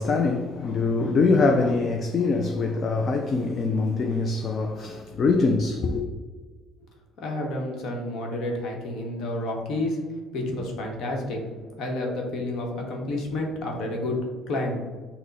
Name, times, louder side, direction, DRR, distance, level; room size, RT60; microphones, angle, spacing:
voice 1, 0.0-6.1, left 3 dB, 35° left, 0.3 m, -23 dB
voice 2, 7.2-10.0 10.3-11.4 11.8-14.1 14.5-14.8, left 1 dB, 60° left, 1.0 m, -30 dB
6.0 x 2.1 x 4.0 m
cardioid pair, 150°, 0 cm